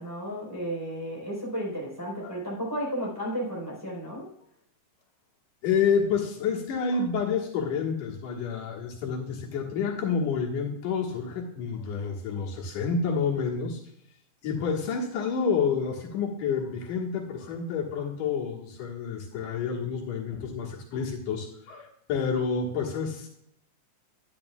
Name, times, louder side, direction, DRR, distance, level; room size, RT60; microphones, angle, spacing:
voice 1, 0.0-4.2, equal, 5° right, -5 dB, 3.7 m, -33 dB
voice 2, 5.6-13.8 14.4-23.3, left 6 dB, 85° left, -1 dB, 3.0 m, -29 dB
11.0 x 10.0 x 2.3 m, 0.73 s
omnidirectional pair, 3.6 m